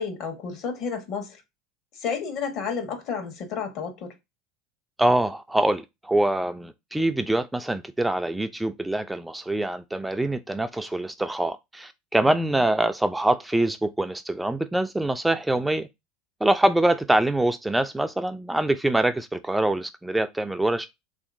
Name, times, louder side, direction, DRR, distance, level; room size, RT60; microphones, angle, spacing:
voice 1, 0.0-1.4 2.0-4.1 12.2-12.5, left 6 dB, 60° left, 1.0 m, -31 dB
voice 2, 5.0-15.9 16.4-20.9, right 1 dB, 5° right, 0.3 m, -24 dB
3.1 x 2.7 x 2.5 m
hypercardioid pair, 90°, 0 cm